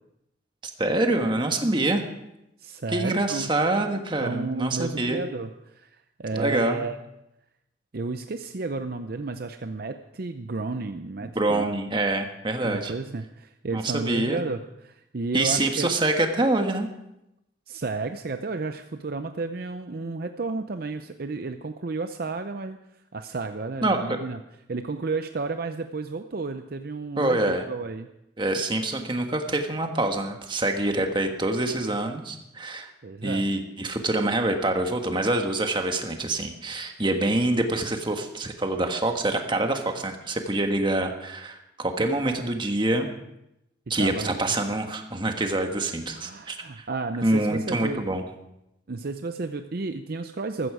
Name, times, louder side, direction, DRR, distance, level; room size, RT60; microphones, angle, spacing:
voice 1, 0.8-2.0 2.9-5.2 6.3-6.8 11.2-12.9 13.7-14.4 15.3-16.9 23.8-24.0 27.2-27.6 28.4-32.9 33.2-43.1 43.9-46.8 47.2-48.2, right 2 dB, 25° right, 4 dB, 1.5 m, -26 dB
voice 2, 2.6-3.5 4.2-5.9 6.2-7.0 7.9-11.7 12.6-15.9 17.7-22.8 23.1-24.4 24.7-28.1 33.0-33.5 44.0-44.8 46.1-48.1 48.9-50.7, right 3 dB, 55° right, 8 dB, 0.6 m, -32 dB
14.5 x 14.0 x 4.9 m, 0.86 s
head